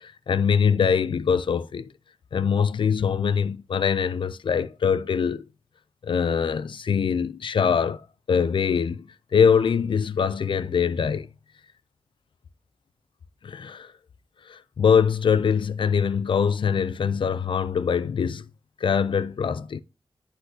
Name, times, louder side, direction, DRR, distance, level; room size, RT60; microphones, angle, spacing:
voice 1, 0.0-1.9 2.3-5.5 6.0-8.0 8.3-9.0 9.3-11.3 13.4-13.9 14.5-18.4 18.8-19.8, left 6 dB, 65° left, 0.4 m, -23 dB
9.8 x 3.9 x 2.7 m
wide cardioid pair, 130°, 9 cm